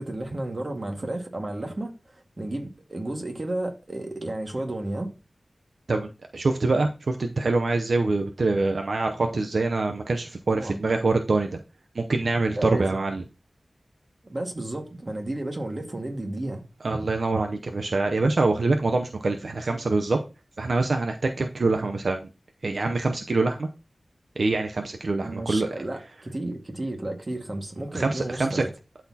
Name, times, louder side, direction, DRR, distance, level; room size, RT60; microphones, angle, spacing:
voice 1, 0.0-1.9 2.4-5.1 10.5-10.8 12.6-12.9 14.3-16.6 25.2-28.7, right 1 dB, 40° right, 1.7 m, -32 dB
voice 2, 5.9-11.6 11.9-13.2 16.8-20.2 20.6-22.3 22.6-23.7 24.4-25.7 27.9-28.6, right 3 dB, 75° right, 0.7 m, -25 dB
12.0 x 4.2 x 2.8 m
wide cardioid pair, 75°, 0 cm